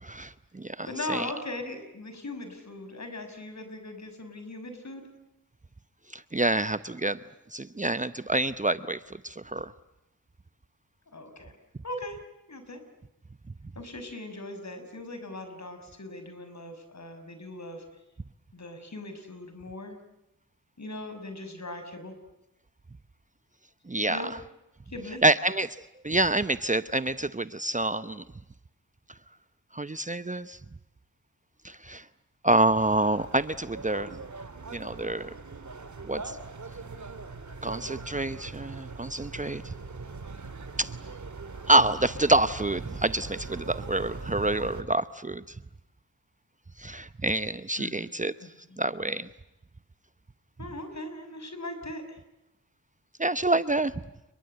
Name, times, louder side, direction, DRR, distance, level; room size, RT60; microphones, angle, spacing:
voice 1, 0.0-1.3 6.1-7.2 7.5-9.7 23.9-24.3 25.2-25.8 26.0-28.2 29.7-30.6 31.6-32.0 32.4-34.2 34.7-35.3 36.0-36.4 37.6-39.7 40.8-40.9 41.7-45.4 46.8-48.3 48.8-49.3 53.2-53.9, right 2 dB, 20° right, 13 dB, 0.9 m, -27 dB
voice 2, 0.9-5.0 11.1-11.5 11.8-12.2 12.5-12.8 13.7-17.8 18.5-20.0 20.8-22.1 24.0-24.3 24.9-25.2 47.8-48.1 48.4-48.5 50.6-52.2, left 2 dB, 50° left, 8 dB, 6.2 m, -39 dB
sound 1, 32.7-44.8, right 4 dB, 55° right, 2.9 m, -41 dB
29.0 x 22.5 x 8.0 m, 0.92 s
cardioid pair, 45°, 34 cm